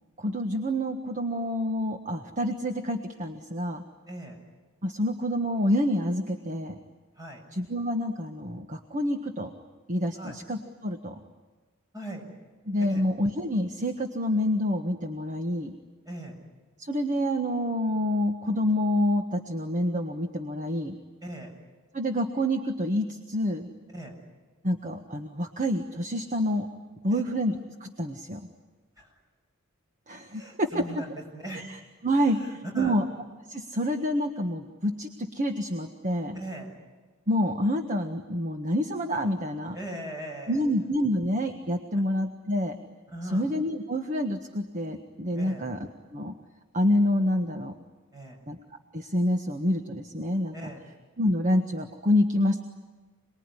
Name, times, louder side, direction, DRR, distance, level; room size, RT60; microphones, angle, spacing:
voice 1, 0.2-3.8 4.8-6.8 7.5-9.5 9.9-11.1 12.7-15.7 16.8-20.9 21.9-23.7 24.6-26.7 27.0-28.4 30.1-30.8 31.5-31.8 32.0-33.0 33.5-36.4 37.3-39.8 40.5-42.8 43.3-45.8 46.1-46.3 46.7-47.7 48.5-48.6 48.9-50.5 51.2-52.6, equal, 35° right, 4 dB, 1.5 m, -27 dB
voice 2, 4.1-4.4 7.2-7.4 10.1-10.4 11.9-12.2 12.9-13.1 16.1-16.4 21.2-21.5 23.9-24.1 27.1-27.2 29.0-29.1 30.3-31.1 31.3-31.6 32.1-33.0 36.3-36.7 39.7-40.7 43.1-43.5 45.3-45.6 48.1-48.4 50.5-50.8, right 1 dB, 20° right, 1 dB, 7.0 m, -39 dB
27.5 x 21.0 x 9.9 m, 1.3 s
head